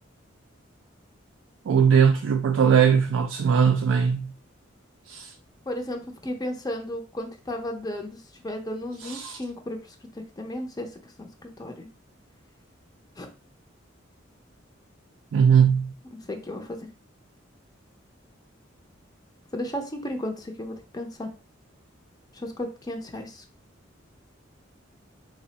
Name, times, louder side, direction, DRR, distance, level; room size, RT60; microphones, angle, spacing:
voice 1, 1.7-4.3 5.1-5.3 9.0-9.4 15.3-15.9, right 7 dB, 85° right, 0.3 m, -20 dB
voice 2, 5.7-11.9 13.2-13.3 16.3-16.8 19.5-21.3 22.3-23.4, left 1 dB, 20° left, 0.5 m, -34 dB
3.4 x 2.0 x 3.9 m
head